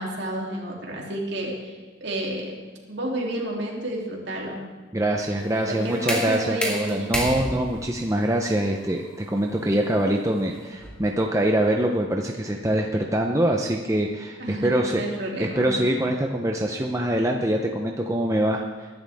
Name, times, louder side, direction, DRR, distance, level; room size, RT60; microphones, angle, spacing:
voice 1, 0.0-2.6 2.9-4.6 5.7-7.1 14.4-15.7, right 1 dB, 55° right, -2 dB, 3.2 m, -31 dB
voice 2, 4.9-15.0 15.4-18.9, right 1 dB, 15° right, 1 dB, 0.8 m, -24 dB
sound 1, 5.4-11.2, equal, 5° left, 2.4 m, -32 dB
22.0 x 11.5 x 3.6 m, 1.5 s
head